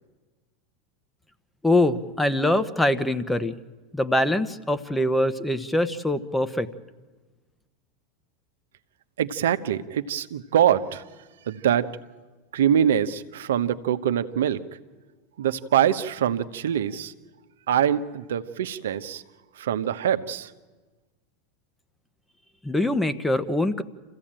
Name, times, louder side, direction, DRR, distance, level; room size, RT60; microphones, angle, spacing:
voice 1, 1.6-3.5 3.9-6.7 22.6-23.8, left 1 dB, 5° left, 11 dB, 1.2 m, -23 dB
voice 2, 9.2-11.0 11.5-11.9 12.5-14.6 15.4-17.1 17.7-19.2 19.6-20.5, right 9 dB, 75° right, 11 dB, 1.0 m, -24 dB
27.0 x 15.5 x 9.0 m, 1.3 s
hypercardioid pair, 95°, 0 cm